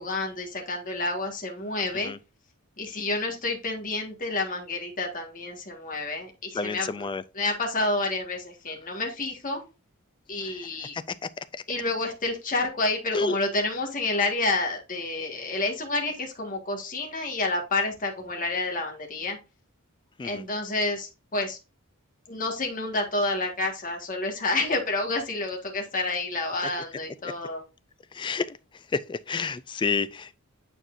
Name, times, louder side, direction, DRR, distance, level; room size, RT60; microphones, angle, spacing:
voice 1, 0.0-2.1 2.8-7.1 7.3-9.6 10.3-11.0 11.7-19.4 20.2-21.6 22.3-27.6, left 2 dB, 40° left, 1.6 m, -29 dB
voice 2, 6.5-7.2 10.4-10.6 10.9-11.0 11.5-11.6 13.1-13.4 20.2-20.4 28.1-28.6 28.9-30.3, left 4 dB, 20° left, 0.3 m, -29 dB
8.9 x 4.5 x 2.6 m
head